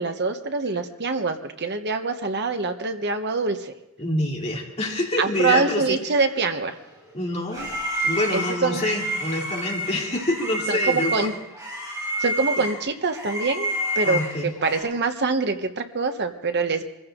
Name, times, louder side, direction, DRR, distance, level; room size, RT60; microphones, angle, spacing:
voice 1, 0.0-3.7 5.2-6.8 8.3-8.8 10.7-11.3 12.2-16.8, right 4 dB, 55° right, 7 dB, 1.2 m, -25 dB
voice 2, 4.0-6.0 7.1-7.7 8.0-11.3 12.6-12.7 14.0-14.5, left 1 dB, 30° left, -1 dB, 2.9 m, -26 dB
sound 1, 6.9-14.8, right 1 dB, 20° right, 5.0 m, -29 dB
Keyboard (musical), 7.6-10.0, left 4 dB, 35° right, 2.8 m, -37 dB
24.5 x 15.5 x 3.8 m, 0.96 s
head